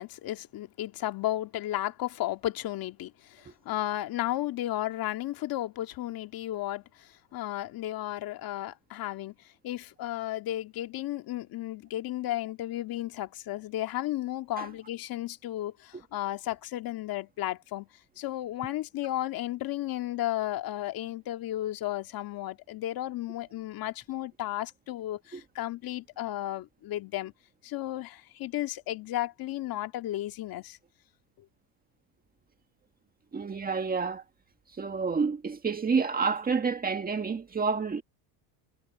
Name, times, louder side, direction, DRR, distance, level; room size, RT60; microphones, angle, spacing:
voice 1, 0.0-9.4 9.6-17.9 18.2-27.3 27.6-30.8, left 14 dB, 45° left, 2.2 m, -34 dB
voice 2, 33.3-34.2 34.8-38.0, right 5 dB, 15° right, 1.8 m, -29 dB
supercardioid pair, 125°, 49 cm